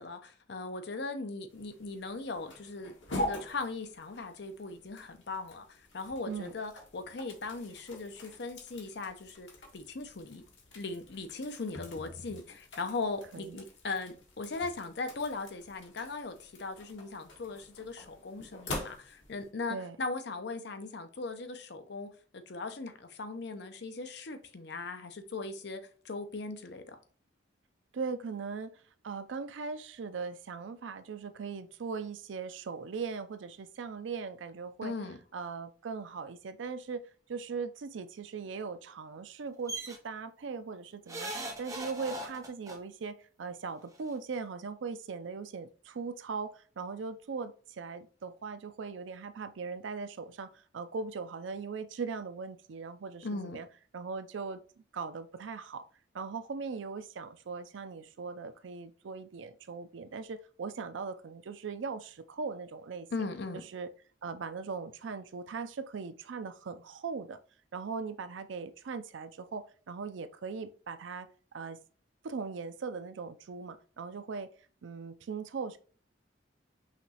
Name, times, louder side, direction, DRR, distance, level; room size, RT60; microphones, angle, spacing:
voice 1, 0.0-9.5 9.7-10.4 10.7-25.8 26.0-27.0 34.8-35.2 53.2-53.6 63.1-63.6, left 3 dB, 65° left, 0.7 m, -39 dB
sound 1, 1.5-19.5, left 1 dB, 85° left, 1.3 m, -45 dB
voice 2, 27.9-34.9 35.3-37.0 37.3-41.3 41.6-53.7 53.9-54.6 54.9-55.8 56.1-63.1 63.5-63.9 64.2-67.4 67.7-71.8 72.2-74.5 74.8-75.8, right 5 dB, 90° right, 0.5 m, -39 dB
sound 2, 39.7-40.0 41.1-42.8 44.0-44.1 44.3-44.4, right 1 dB, 20° right, 0.8 m, -39 dB
5.7 x 3.0 x 2.8 m
head